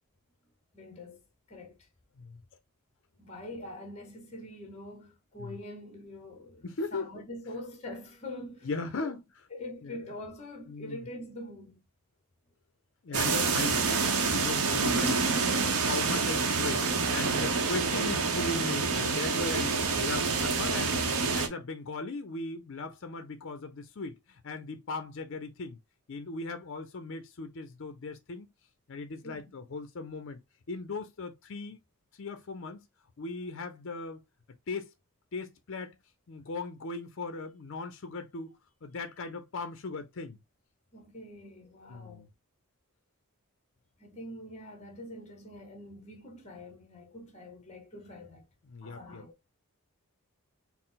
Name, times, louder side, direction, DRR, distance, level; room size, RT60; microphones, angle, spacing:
voice 1, 0.7-1.2 1.5-1.8 3.2-8.7 9.0-9.1 9.5-11.8 17.4-17.6 29.2-29.4 40.9-42.3 44.0-48.5 48.8-49.4, left 1 dB, 30° left, 0.9 m, -44 dB
voice 2, 6.6-7.1 8.6-9.2 9.8-10.0 10.7-11.1 13.0-16.8 17.1-25.8 26.1-28.5 28.9-30.4 30.7-31.8 32.2-32.9 33.2-34.2 34.7-34.9 35.3-36.0 36.3-38.5 38.8-40.4 41.9-42.3 48.7-49.2, left 3 dB, 55° left, 0.5 m, -38 dB
sound 1, 13.1-21.5, right 4 dB, 85° right, 0.8 m, -27 dB
4.3 x 2.0 x 3.8 m
head